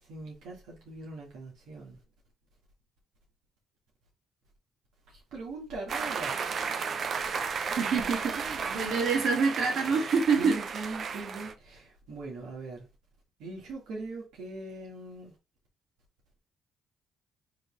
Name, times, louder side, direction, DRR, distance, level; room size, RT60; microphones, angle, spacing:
voice 1, 0.0-2.0 5.1-6.4 7.7-8.9 10.3-12.9 13.4-15.3, right 3 dB, 85° right, 1.5 m, -41 dB
sound 1, 5.9-11.5, right 5 dB, 55° right, 0.5 m, -34 dB
voice 2, 7.6-10.6, right 5 dB, 70° right, 1.6 m, -27 dB
3.8 x 3.1 x 3.7 m
cardioid pair, 90°, 0 cm